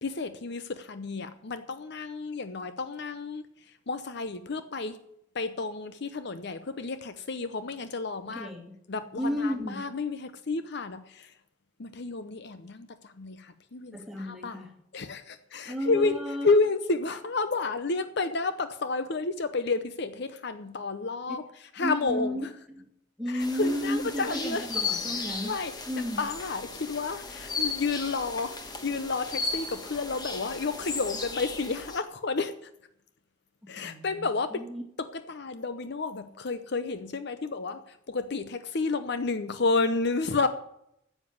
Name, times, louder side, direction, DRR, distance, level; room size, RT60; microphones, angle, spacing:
voice 1, 0.0-3.5 3.9-5.0 5.3-8.5 8.9-11.3 11.8-14.0 14.3-14.6 14.9-16.2 16.4-21.4 21.7-22.5 23.3-24.7 25.4-25.7 26.2-32.5 33.7-34.6 35.0-40.5, left 3 dB, 55° left, 11 dB, 0.7 m, -31 dB
voice 2, 8.2-8.8 9.2-9.9 13.9-14.7 15.7-16.5 21.8-22.8 23.2-25.5 25.9-26.3 33.6-34.8, equal, ahead, 1 dB, 2.2 m, -33 dB
sound 1, 23.4-32.0, left 4 dB, 20° left, 1.3 m, -35 dB
10.0 x 7.4 x 9.3 m, 0.77 s
head